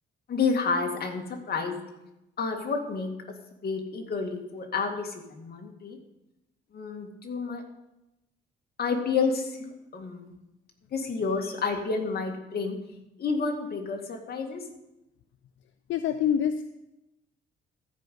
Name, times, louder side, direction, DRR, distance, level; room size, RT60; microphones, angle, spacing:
voice 1, 0.3-1.8 2.4-3.1 3.6-6.0 6.7-7.6 8.8-10.3 10.9-12.8 13.2-14.6, left 4 dB, 50° left, 3 dB, 2.2 m, -30 dB
voice 2, 15.9-16.6, left 9 dB, 75° left, 10 dB, 0.6 m, -25 dB
14.0 x 5.3 x 7.7 m, 0.93 s
cardioid pair, 90°, 20 cm